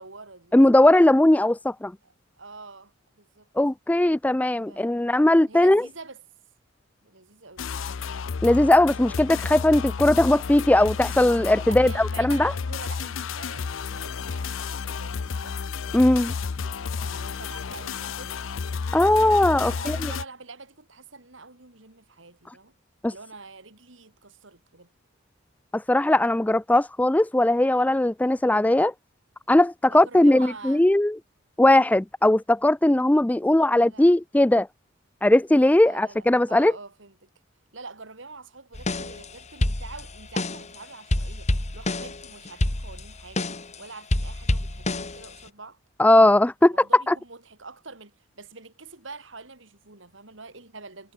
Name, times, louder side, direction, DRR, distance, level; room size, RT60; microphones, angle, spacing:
voice 1, 0.0-0.5 2.0-3.5 4.7-4.9 5.5-6.2 7.0-7.9 11.7-18.4 19.7-22.8 23.1-24.9 29.9-30.9 33.7-34.1 35.8-37.3 37.7-45.8 46.6-51.1, right 3 dB, 70° right, 3.8 m, -45 dB
voice 2, 0.5-1.9 3.6-5.9 8.4-12.5 15.9-16.3 18.9-20.0 23.0-23.1 25.7-28.9 29.5-31.2 31.6-34.7 35.2-36.7 46.0-47.1, left 1 dB, 10° left, 0.4 m, -19 dB
sound 1, 7.6-20.2, left 5 dB, 80° left, 0.6 m, -31 dB
sound 2, 38.7-39.3 39.6-40.7 41.1-43.7 44.1-45.5, left 1 dB, 35° left, 1.8 m, -27 dB
head